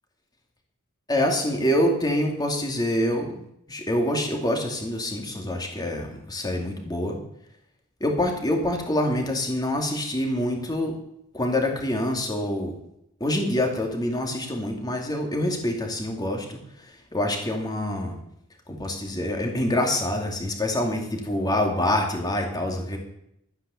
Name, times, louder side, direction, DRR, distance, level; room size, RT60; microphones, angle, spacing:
voice 1, 1.1-7.2 8.0-10.9 11.3-12.7 13.2-18.2 18.7-23.0, left 1 dB, 20° left, 2 dB, 2.5 m, -26 dB
12.5 x 9.7 x 7.0 m, 0.77 s
head